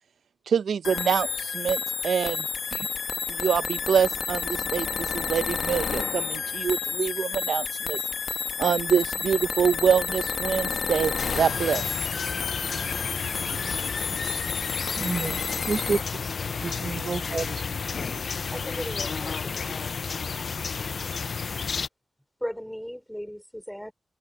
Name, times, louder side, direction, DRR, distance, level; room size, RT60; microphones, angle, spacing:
voice 1, 0.5-2.5 2.7-2.9 3.3-8.0 8.6-11.8, right 7 dB, 90° right, 0.5 m, -25 dB
sound 1, 0.8-16.0, left 6 dB, 70° left, 1.3 m, -30 dB
sound 2, 11.2-21.9, left 5 dB, 55° left, 0.3 m, -32 dB
voice 2, 14.9-16.0 16.6-17.8, right 4 dB, 45° right, 0.8 m, -30 dB
voice 3, 18.5-19.8 22.4-23.9, equal, ahead, 4.1 m, -36 dB
wide cardioid pair, 140°, 0 cm